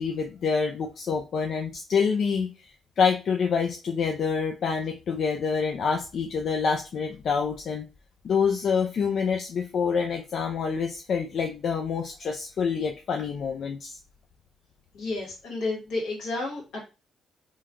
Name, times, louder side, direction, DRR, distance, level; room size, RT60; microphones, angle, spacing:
voice 1, 0.0-2.7 3.0-7.9 8.2-14.0, left 6 dB, 60° left, 3 dB, 0.3 m, -27 dB
voice 2, 14.9-16.8, left 2 dB, 85° left, -2 dB, 1.3 m, -31 dB
3.0 x 2.2 x 2.4 m, 0.30 s
cardioid pair, 90°, 0 cm